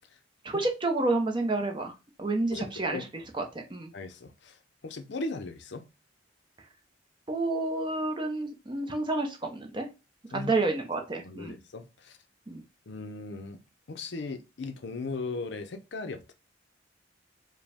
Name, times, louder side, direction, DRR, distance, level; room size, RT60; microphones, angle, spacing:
voice 1, 0.4-3.9 7.3-9.9 10.3-11.6 12.5-12.6, right 2 dB, 25° right, 0.7 m, -30 dB
voice 2, 2.5-3.1 3.9-4.6 4.8-5.8 10.3-10.5 11.2-12.2 12.9-13.6 13.9-16.3, left 3 dB, 65° left, 0.6 m, -37 dB
5.0 x 2.2 x 3.4 m
head